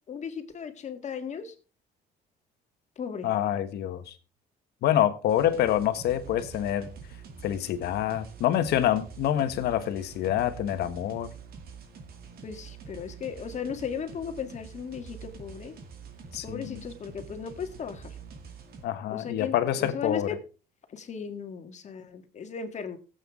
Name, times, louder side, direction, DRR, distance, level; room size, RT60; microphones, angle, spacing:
voice 1, 0.1-1.6 3.0-3.3 12.4-15.7 16.4-18.2 19.1-20.4 20.9-23.0, left 6 dB, 45° left, 1.8 m, -36 dB
voice 2, 3.2-4.1 4.8-6.9 7.4-11.3 16.3-16.8 18.8-20.3, left 11 dB, 75° left, 1.3 m, -26 dB
sound 1, 5.3-18.8, right 5 dB, 65° right, 2.3 m, -46 dB
16.0 x 8.2 x 3.6 m
cardioid pair, 110°, 17 cm